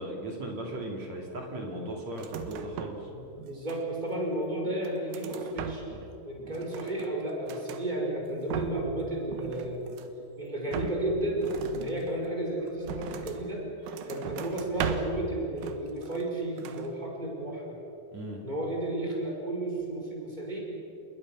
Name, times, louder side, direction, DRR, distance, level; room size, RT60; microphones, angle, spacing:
voice 1, 0.0-3.1 18.1-18.4, right 1 dB, 40° right, 0 dB, 3.2 m, -37 dB
sound 1, 2.1-3.1 3.4-4.2 4.6-6.1 6.4-7.9 8.3-9.0 9.3-10.2 10.7-13.5 13.8-15.3 15.6-16.3 16.6-16.9, right 8 dB, 80° right, 3.8 m, -38 dB
voice 2, 3.1-5.8 6.2-9.8 10.4-17.8 18.4-20.6, right 1 dB, 10° right, -1 dB, 4.7 m, -33 dB
29.5 x 21.0 x 6.3 m, 2.8 s
omnidirectional pair, 5.6 m